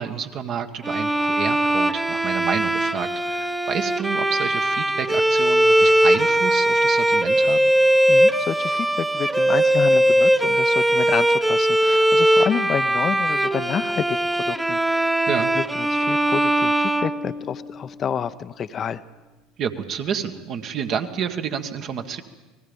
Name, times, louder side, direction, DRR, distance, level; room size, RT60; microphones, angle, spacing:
voice 1, 0.0-7.6 15.3-15.5 19.6-22.2, right 7 dB, 50° right, 6 dB, 1.7 m, -29 dB
Bowed string instrument, 0.8-17.8, right 1 dB, 10° right, 1.1 m, -20 dB
voice 2, 8.1-15.2 15.5-19.0, left 8 dB, 40° left, 12 dB, 0.8 m, -29 dB
30.0 x 20.0 x 5.4 m, 1.2 s
hypercardioid pair, 70°, 0 cm